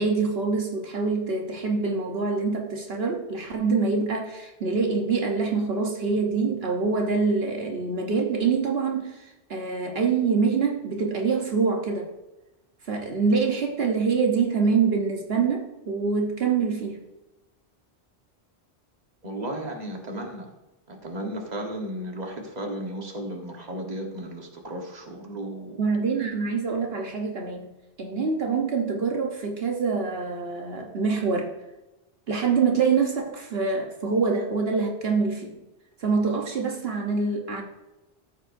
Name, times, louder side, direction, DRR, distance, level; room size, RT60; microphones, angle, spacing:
voice 1, 0.0-12.1 12.8-17.0 25.8-27.7 28.0-31.5 32.3-35.6 36.0-37.6, right 5 dB, 75° right, 1 dB, 1.3 m, -25 dB
voice 2, 19.2-20.5 20.9-25.8, right 1 dB, 40° right, 2 dB, 1.5 m, -34 dB
14.0 x 7.5 x 2.6 m, 1.0 s
omnidirectional pair, 1.0 m